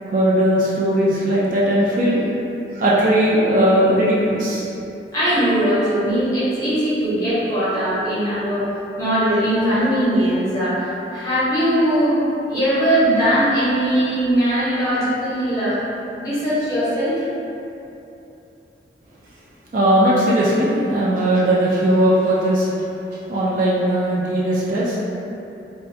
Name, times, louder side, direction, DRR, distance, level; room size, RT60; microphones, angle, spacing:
voice 1, 0.1-2.2 2.7-4.6 19.7-22.7 23.3-25.1, right 1 dB, 45° right, -7 dB, 0.3 m, -18 dB
voice 2, 5.1-8.7 9.0-12.2 12.5-15.8 16.2-17.2, equal, 20° left, -12 dB, 0.7 m, -20 dB
2.3 x 2.1 x 2.6 m, 2.8 s
head